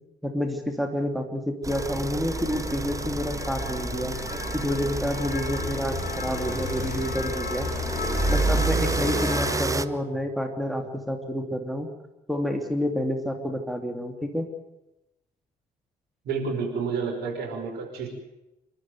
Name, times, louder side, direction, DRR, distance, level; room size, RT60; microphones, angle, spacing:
voice 1, 0.2-4.2 4.5-7.7 8.3-11.9 12.3-14.5, left 1 dB, ahead, 4 dB, 2.8 m, -29 dB
sound 1, 1.6-9.9, right 3 dB, 15° right, 0.9 m, -30 dB
sound 2, 1.7-9.7, left 5 dB, 40° left, 4.3 m, -33 dB
voice 2, 16.2-18.1, right 5 dB, 60° right, 0 dB, 5.5 m, -30 dB
27.5 x 12.5 x 9.4 m, 0.93 s
figure-of-eight pair, 40°, 19 cm